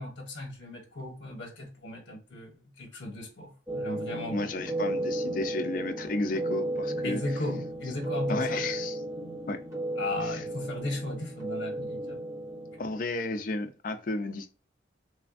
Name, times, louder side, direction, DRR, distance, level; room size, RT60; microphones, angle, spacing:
voice 1, 0.0-4.5 7.0-8.6 10.0-12.2, left 2 dB, 65° left, 0.8 m, -36 dB
sound 1, 3.7-13.0, right 1 dB, 15° right, 0.8 m, -34 dB
voice 2, 4.3-7.2 8.3-9.0 9.5-9.6 10.2-10.4 12.8-14.5, left 2 dB, 45° left, 0.4 m, -32 dB
3.3 x 2.1 x 2.4 m
head